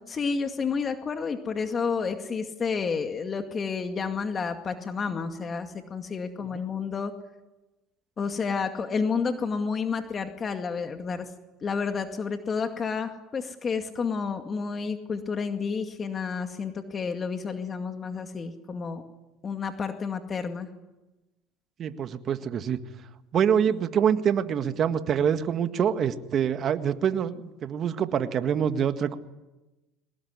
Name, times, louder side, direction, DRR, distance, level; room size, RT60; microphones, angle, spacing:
voice 1, 0.1-7.1 8.2-11.3 11.6-19.0 19.4-20.7, left 5 dB, 35° left, 6 dB, 2.1 m, -30 dB
voice 2, 21.8-22.8 23.3-29.2, right 8 dB, 45° right, 9 dB, 1.7 m, -25 dB
23.0 x 19.5 x 9.7 m, 1.1 s
supercardioid pair, 85°, 0 cm